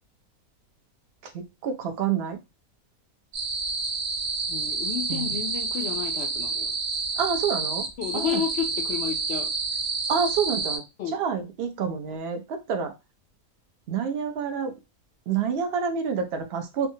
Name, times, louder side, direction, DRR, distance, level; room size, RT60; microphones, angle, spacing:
voice 1, 1.3-2.4 5.1-5.3 7.2-7.9 8.1-8.4 10.1-10.8 11.1-12.9 13.9-14.7 15.3-16.9, right 6 dB, 60° right, 0.7 m, -28 dB
sound 1, 3.3-10.8, right 4 dB, 85° right, 1.4 m, -29 dB
voice 2, 4.5-6.8 8.0-9.5 11.0-11.1, left 8 dB, 65° left, 0.6 m, -31 dB
3.5 x 2.0 x 2.7 m
omnidirectional pair, 1.6 m